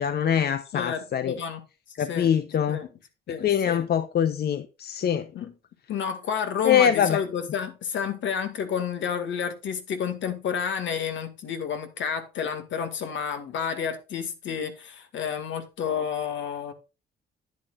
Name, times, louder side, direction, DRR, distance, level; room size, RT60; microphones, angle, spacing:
voice 1, 0.0-1.3 2.0-2.8 3.4-5.3 6.6-7.2, left 9 dB, 55° left, 0.7 m, -23 dB
voice 2, 0.7-1.6 2.0-2.3 2.7-2.9 3.3-3.8 5.3-5.6 5.9-16.7, left 7 dB, 70° left, 1.9 m, -30 dB
10.5 x 9.1 x 2.4 m
cardioid pair, 90°, 20 cm